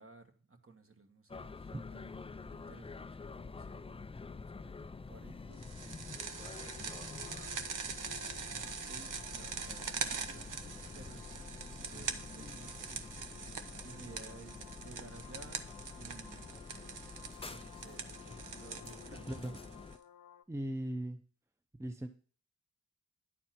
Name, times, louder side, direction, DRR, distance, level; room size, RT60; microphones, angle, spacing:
voice 1, 0.0-4.0 4.5-7.1 7.8-13.1 13.5-16.5 17.5-19.7, right 3 dB, 45° right, 5 dB, 1.6 m, -56 dB
sound 1, 1.3-20.0, left 4 dB, 20° left, 0.4 m, -48 dB
sound 2, 5.6-19.9, right 6 dB, 70° right, 0.8 m, -43 dB
sound 3, 6.2-20.4, left 9 dB, 85° left, 0.7 m, -57 dB
voice 2, 19.3-19.6 20.5-21.2 21.8-22.1, right 1 dB, 10° right, 6 dB, 0.8 m, -38 dB
10.0 x 4.3 x 5.9 m, 0.43 s
cardioid pair, 50°, 32 cm